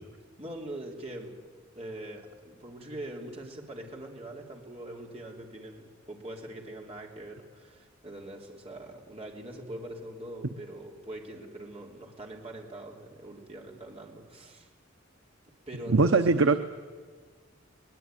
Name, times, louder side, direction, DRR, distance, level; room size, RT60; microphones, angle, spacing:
voice 1, 0.4-1.3 1.8-14.7 15.7-16.6, right 1 dB, 30° right, 0 dB, 3.4 m, -43 dB
voice 2, 15.9-16.6, right 3 dB, 90° right, 9 dB, 0.8 m, -21 dB
22.0 x 19.0 x 9.3 m, 1.5 s
head